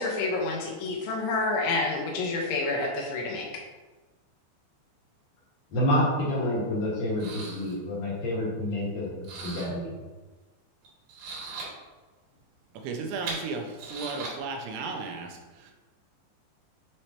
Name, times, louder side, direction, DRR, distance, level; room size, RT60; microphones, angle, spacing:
voice 1, 0.0-3.5, left 3 dB, 75° left, -1 dB, 3.4 m, -28 dB
voice 2, 5.7-9.9, left 1 dB, 60° left, -6 dB, 2.4 m, -28 dB
sound 1, 6.4-6.5 7.2-7.7 9.2-9.7 10.9-11.7 12.9-14.3, right 4 dB, 60° right, 3.4 m, -38 dB
voice 3, 12.8-15.7, right 4 dB, 80° right, 3 dB, 3.0 m, -35 dB
8.9 x 4.9 x 2.9 m, 1.2 s
omnidirectional pair, 5.6 m